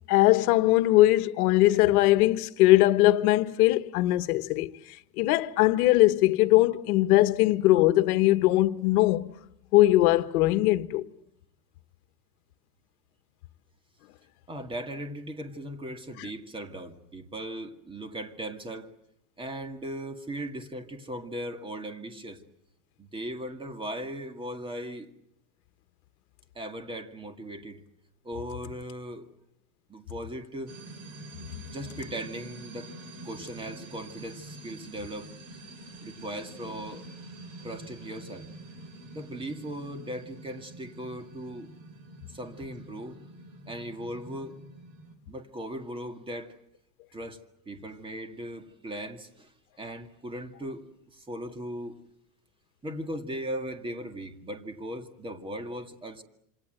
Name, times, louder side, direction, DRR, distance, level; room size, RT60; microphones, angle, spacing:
voice 1, 0.1-4.7 5.2-9.3 9.7-11.0, left 17 dB, 70° left, 1.4 m, -21 dB
voice 2, 14.5-18.9 19.4-22.4 23.0-25.1 26.6-27.8 28.2-29.3 29.9-30.8 31.7-32.9 33.2-35.3 36.0-37.0 37.6-38.5 39.1-41.7 42.3-43.2 43.7-44.6 45.3-46.6 47.1-47.4 47.7-49.5 49.8-52.0 52.8-56.2, right 1 dB, 10° right, 2.0 m, -38 dB
sound 1, 30.7-45.1, right 2 dB, 40° right, 4.6 m, -46 dB
27.5 x 26.5 x 7.9 m
supercardioid pair, 155°, 45 cm